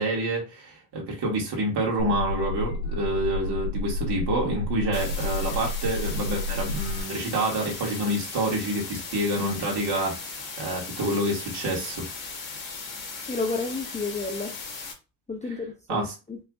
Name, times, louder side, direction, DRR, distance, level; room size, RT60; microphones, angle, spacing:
voice 1, 0.0-12.1 15.9-16.1, right 1 dB, 50° right, 2.6 m, -28 dB
sound 1, 2.0-7.0, left 2 dB, 65° left, 1.5 m, -30 dB
sound 2, 4.9-14.9, left 4 dB, 40° left, 2.2 m, -37 dB
voice 2, 13.2-14.6 15.3-16.4, left 3 dB, 15° left, 0.7 m, -31 dB
5.4 x 3.4 x 2.6 m
supercardioid pair, 95°, 50 cm